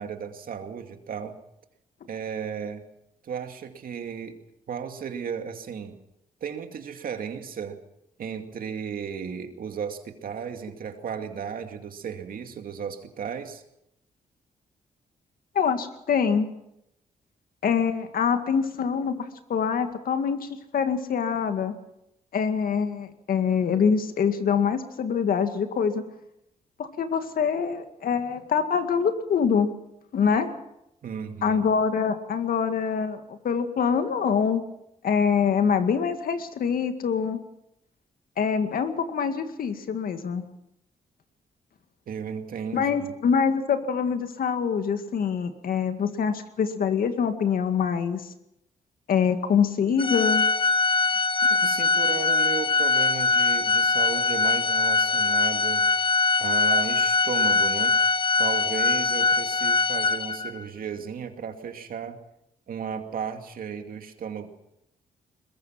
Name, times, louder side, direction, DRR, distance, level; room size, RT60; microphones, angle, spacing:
voice 1, 0.0-1.4 2.1-2.8 3.2-4.4 4.7-6.0 6.4-7.8 8.2-13.6 31.0-31.6 42.1-43.1 51.5-55.8 56.4-58.0 58.4-62.2 62.7-64.5, right 7 dB, 70° right, 6 dB, 2.4 m, -34 dB
voice 2, 15.5-16.5 17.6-21.7 22.3-26.0 26.8-29.7 30.1-30.5 31.4-34.6 35.0-37.4 38.4-40.4 42.7-48.2 49.1-50.5, left 6 dB, 70° left, 8 dB, 2.1 m, -25 dB
Organ, 50.0-60.6, left 4 dB, 35° left, 1.0 m, -22 dB
21.5 x 21.5 x 5.9 m, 0.83 s
cardioid pair, 60°, 15 cm